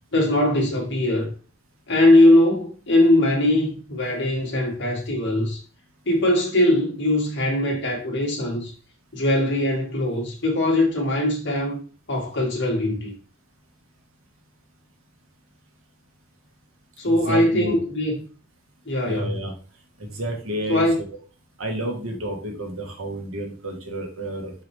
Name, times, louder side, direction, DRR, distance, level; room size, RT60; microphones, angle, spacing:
voice 1, 0.1-1.3 1.9-5.6 6.1-8.7 9.1-11.8 12.1-13.1 17.0-18.1 18.9-19.3 20.7-21.0, left 1 dB, 60° left, 2.1 m, -20 dB
voice 2, 17.0-17.8 19.0-19.5 20.0-20.8 21.6-24.5, right 1 dB, 90° right, 1.6 m, -30 dB
5.9 x 4.8 x 3.3 m
head